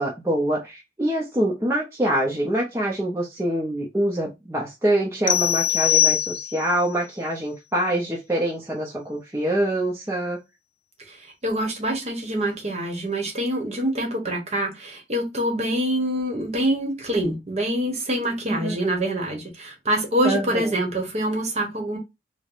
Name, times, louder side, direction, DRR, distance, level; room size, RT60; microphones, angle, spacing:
voice 1, 0.0-10.4 18.5-18.8 20.2-20.7, right 1 dB, 15° right, 0.6 m, -25 dB
sound 1, 5.3-6.8, left 11 dB, 90° left, 0.4 m, -21 dB
voice 2, 11.1-22.0, right 1 dB, 35° right, 1.0 m, -25 dB
4.5 x 2.1 x 2.5 m
head